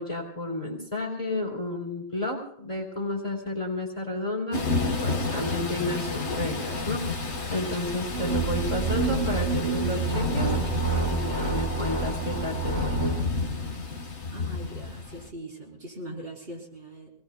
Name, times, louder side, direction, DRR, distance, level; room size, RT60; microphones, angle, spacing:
voice 1, 0.0-13.0, left 2 dB, 30° left, -3 dB, 3.0 m, -32 dB
Thunder / Rain, 4.5-15.3, left 3 dB, 90° left, 1.6 m, -31 dB
sound 1, 8.0-13.3, right 4 dB, 80° right, 6.9 m, -28 dB
voice 2, 14.3-17.1, right 1 dB, 60° right, -3 dB, 4.6 m, -41 dB
28.0 x 19.0 x 2.3 m, 0.65 s
omnidirectional pair, 1.1 m